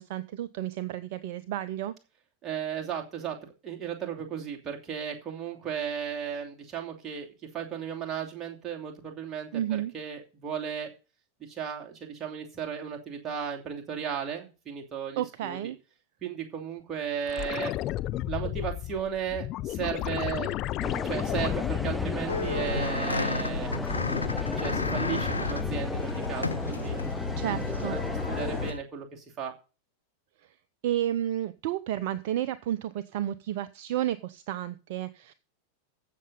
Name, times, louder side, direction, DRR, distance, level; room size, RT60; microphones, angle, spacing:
voice 1, 0.0-1.9 9.5-9.9 15.2-15.8 27.4-28.0 30.8-35.3, right 12 dB, 50° right, 15 dB, 0.6 m, -31 dB
voice 2, 2.4-7.3 7.5-9.5 9.9-10.9 11.4-15.7 16.2-17.7 18.3-20.6 21.0-23.7 24.6-27.0 27.4-28.0 28.3-29.5, right 8 dB, 25° right, 1 dB, 2.8 m, -35 dB
sound 1, 17.3-23.1 23.4-26.0 28.4-28.5, left 15 dB, 35° left, 0.5 m, -33 dB
sound 2, 20.8-28.7, left 1 dB, 5° left, 0.7 m, -35 dB
sound 3, 22.3-28.8, left 4 dB, 80° left, 0.6 m, -32 dB
15.0 x 6.9 x 4.0 m, 0.32 s
figure-of-eight pair, 90°, 0 cm